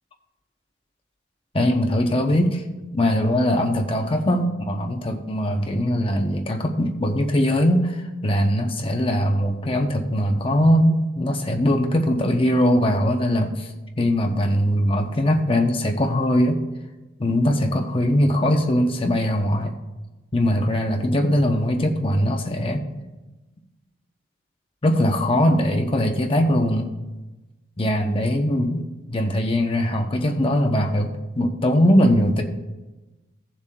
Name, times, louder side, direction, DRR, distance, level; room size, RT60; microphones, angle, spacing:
voice 1, 1.5-2.6 2.9-13.7 14.0-16.6 17.2-19.7 20.3-22.8 24.8-26.9 27.8-32.4, equal, 30° left, 3 dB, 0.7 m, -21 dB
16.5 x 7.2 x 2.3 m, 1.1 s
head